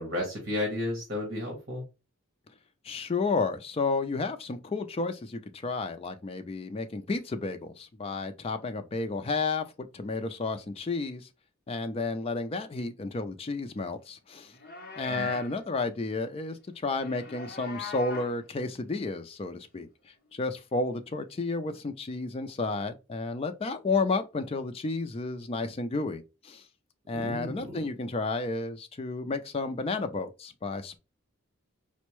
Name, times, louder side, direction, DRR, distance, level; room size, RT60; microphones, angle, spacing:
voice 1, 0.0-1.8 15.1-15.3 27.1-27.8, left 1 dB, 50° right, 1.3 m, -33 dB
voice 2, 2.8-11.3 11.7-14.5 15.0-19.9 20.3-26.6 27.1-31.0, left 3 dB, 30° left, 0.3 m, -32 dB
Livestock farm animals working animals, 14.4-15.6 16.9-18.4, left 3 dB, 45° left, 0.7 m, -41 dB
4.3 x 2.1 x 3.0 m
head